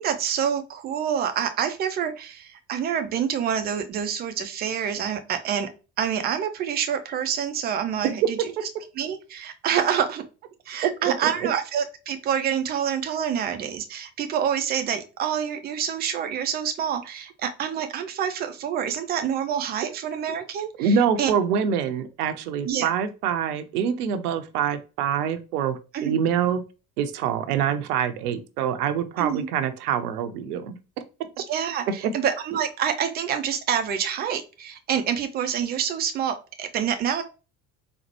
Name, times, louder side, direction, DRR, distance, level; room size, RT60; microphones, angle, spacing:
voice 1, 0.0-5.7 6.0-8.5 9.0-10.2 10.7-21.3 22.6-22.9 25.9-26.1 29.2-29.5 31.5-37.2, right 8 dB, 20° right, 8 dB, 0.4 m, -27 dB
voice 2, 20.8-26.6 27.0-30.8, right 7 dB, 65° right, 10 dB, 0.6 m, -25 dB
4.1 x 2.1 x 2.9 m, 0.32 s
figure-of-eight pair, 60°, 49 cm